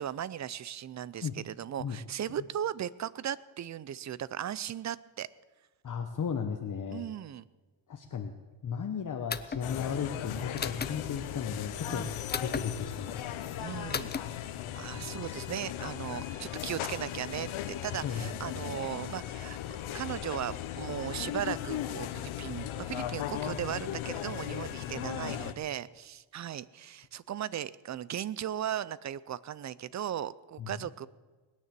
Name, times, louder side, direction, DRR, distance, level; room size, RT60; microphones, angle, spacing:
voice 1, 0.0-5.3 6.9-7.4 11.9-12.1 13.6-14.1 14.8-19.6 19.9-31.1, right 10 dB, 35° right, 19 dB, 0.5 m, -37 dB
voice 2, 5.8-7.1 7.9-8.3 8.6-12.1 12.4-13.6 14.9-15.0 18.0-18.3 30.6-30.7, left 7 dB, 40° left, 5 dB, 1.1 m, -35 dB
sound 1, 9.3-9.6 10.6-10.9 12.3-12.6 13.9-14.2, left 5 dB, 20° left, 0.6 m, -34 dB
sound 2, 9.6-25.5, left 11 dB, 80° left, 1.1 m, -37 dB
20.0 x 9.6 x 7.5 m, 1.3 s
cardioid pair, 130°, 49 cm